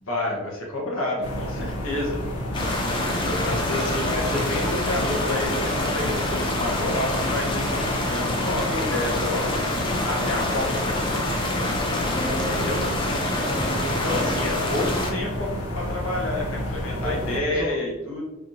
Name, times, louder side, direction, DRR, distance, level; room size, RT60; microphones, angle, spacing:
voice 1, 0.0-2.2 3.4-9.8 10.0-10.8 12.5-12.8 14.0-18.2, left 1 dB, 75° left, -2 dB, 1.1 m, -29 dB
sound 1, 1.2-17.4, equal, 90° left, 0.6 m, -31 dB
sound 2, 2.5-15.1, left 1 dB, 20° left, 0.4 m, -26 dB
voice 2, 3.0-3.6 12.1-13.0 13.3-14.6 16.7-17.7, equal, 25° right, -3 dB, 0.8 m, -34 dB
4.4 x 2.7 x 2.6 m, 1.0 s
head